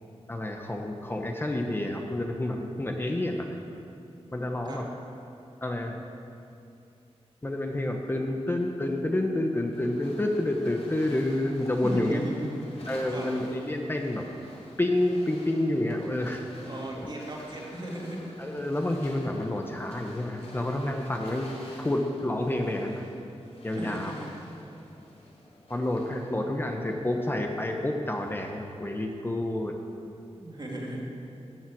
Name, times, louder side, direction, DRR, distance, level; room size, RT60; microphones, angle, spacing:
voice 1, 0.3-3.6 4.3-4.8 5.6-6.0 7.4-12.2 12.9-14.2 14.8-16.5 17.0-17.1 18.4-21.5 21.8-23.1 23.6-24.1 25.7-29.7, left 1 dB, 20° left, 2 dB, 0.9 m, -29 dB
sound 1, 9.7-28.9, left 1 dB, 70° left, 2.8 m, -50 dB
voice 2, 11.8-12.5 13.1-13.3 16.6-18.2 22.8-22.9 23.7-24.3 30.2-31.0, right 1 dB, 40° right, -3 dB, 2.5 m, -36 dB
12.0 x 7.3 x 8.5 m, 2.6 s
wide cardioid pair, 115°, 11 cm